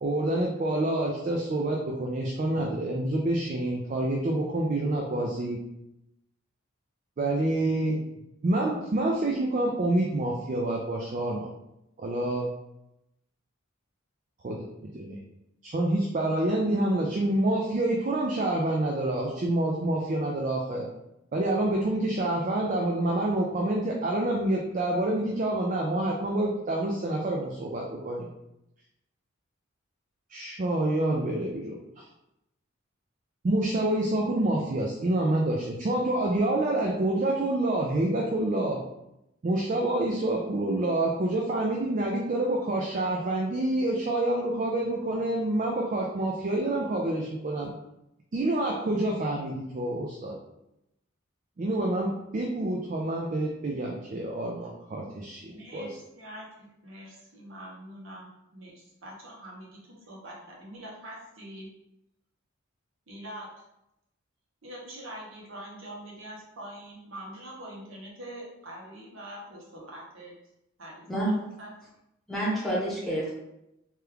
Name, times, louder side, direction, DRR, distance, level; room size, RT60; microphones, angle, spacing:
voice 1, 0.0-5.6 7.2-8.0 8.4-11.5 12.0-12.5 14.4-15.2 15.6-20.9 21.3-28.3 30.3-32.1 33.4-38.8 39.4-47.7 48.3-50.3 51.6-56.0, right 1 dB, 35° right, 0 dB, 0.3 m, -27 dB
voice 2, 55.4-61.7 63.1-63.5 64.6-70.3 70.8-71.7, right 1 dB, 70° right, -3 dB, 0.9 m, -44 dB
voice 3, 72.3-73.3, right 1 dB, ahead, -7 dB, 0.9 m, -28 dB
3.0 x 2.3 x 3.3 m, 0.86 s
head